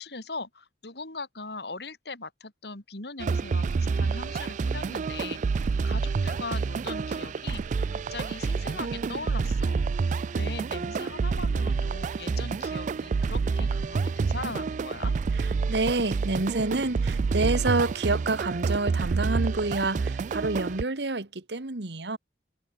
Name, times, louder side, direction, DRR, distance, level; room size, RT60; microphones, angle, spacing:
voice 1, 0.0-5.4 5.8-7.6 7.9-9.8 10.3-15.1, left 3 dB, 65° left, 3.2 m, -40 dB
sound 1, 3.2-20.8, right 4 dB, 45° right, 0.3 m, -28 dB
voice 2, 15.7-22.2, right 2 dB, 70° right, 1.5 m, -28 dB
head